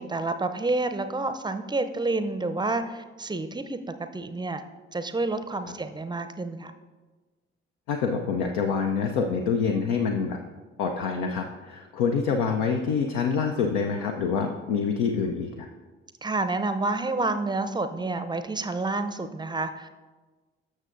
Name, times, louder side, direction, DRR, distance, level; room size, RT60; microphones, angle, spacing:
voice 1, 0.0-3.8 4.1-4.6 4.9-6.7 16.2-19.9, right 2 dB, 15° right, 9 dB, 0.6 m, -29 dB
voice 2, 7.9-10.4 10.8-15.7, left 5 dB, 70° left, 3 dB, 0.6 m, -26 dB
13.5 x 6.5 x 2.5 m, 1.3 s
figure-of-eight pair, 45°, 33 cm